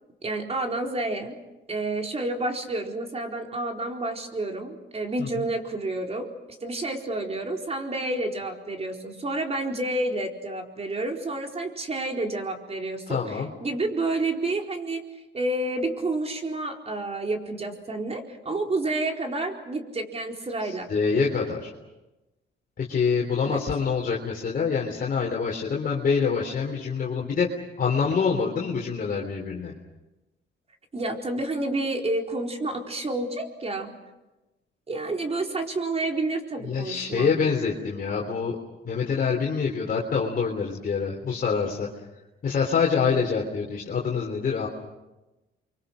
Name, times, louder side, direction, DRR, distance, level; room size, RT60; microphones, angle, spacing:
voice 1, 0.2-1.4 1.7-6.3 6.6-15.0 15.3-20.9 23.4-23.6 30.9-34.0 34.9-37.3, right 2 dB, 30° right, 2 dB, 4.4 m, -29 dB
voice 2, 13.1-13.5 20.7-21.7 22.8-27.5 27.8-29.7 36.7-38.6 38.8-41.9 42.4-44.7, left 5 dB, 45° left, -1 dB, 3.7 m, -26 dB
29.5 x 24.0 x 6.5 m, 1.0 s
cardioid pair, 90°, 20 cm